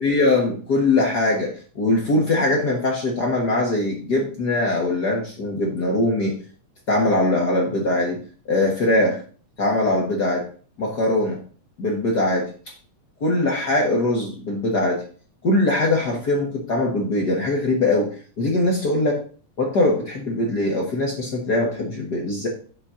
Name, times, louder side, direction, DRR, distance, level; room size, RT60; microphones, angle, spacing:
voice 1, 0.0-6.3 6.9-8.2 8.5-9.2 9.6-10.4 10.8-11.4 11.8-12.5 13.2-15.0 15.4-18.1 18.4-19.2 19.6-22.5, left 2 dB, 45° left, -1 dB, 1.3 m, -21 dB
7.2 x 4.2 x 6.3 m, 0.42 s
omnidirectional pair, 3.6 m